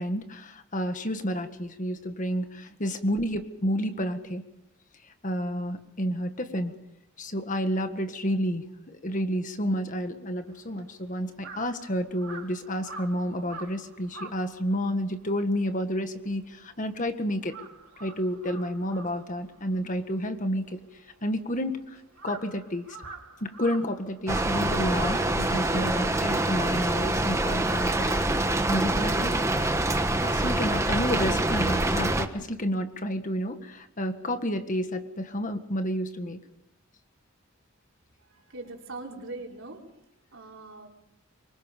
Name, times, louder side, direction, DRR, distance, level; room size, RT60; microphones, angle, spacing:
voice 1, 0.0-4.4 5.2-6.7 7.2-17.6 18.0-20.8 21.2-23.0 23.4-28.2 28.7-29.3 30.2-36.4, equal, 35° left, 7 dB, 1.7 m, -30 dB
Crow, 10.5-17.0 17.3-25.9, right 3 dB, 90° right, 4.2 m, -46 dB
Rain, 24.3-32.3, right 1 dB, 15° right, 1.2 m, -25 dB
voice 2, 38.3-39.8 40.3-40.9, right 2 dB, 65° right, 0 dB, 4.5 m, -41 dB
26.0 x 24.0 x 5.3 m, 0.85 s
head